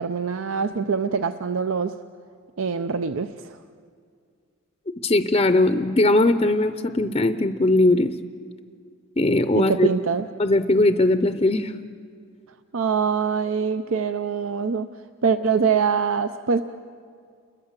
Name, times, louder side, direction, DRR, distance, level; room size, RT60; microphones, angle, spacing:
voice 1, 0.0-2.0 2.6-3.6 9.6-10.3 12.7-14.9 15.2-16.6, right 6 dB, 70° right, 10 dB, 0.6 m, -24 dB
voice 2, 5.0-8.1 9.2-9.9 10.4-11.7, left 2 dB, 25° left, 9 dB, 0.6 m, -19 dB
29.0 x 21.5 x 7.4 m, 2.2 s
head